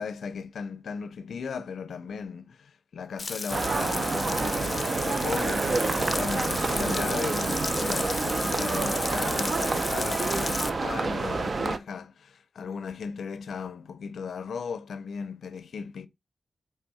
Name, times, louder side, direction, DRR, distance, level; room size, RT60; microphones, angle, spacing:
voice 1, 0.0-16.1, left 5 dB, 80° left, 0.4 m, -36 dB
Frying (food), 3.2-10.7, left 3 dB, 30° left, 0.5 m, -34 dB
sound 1, 3.5-11.8, right 3 dB, 40° right, 0.5 m, -28 dB
8.1 x 3.3 x 4.1 m
wide cardioid pair, 130°, 0 cm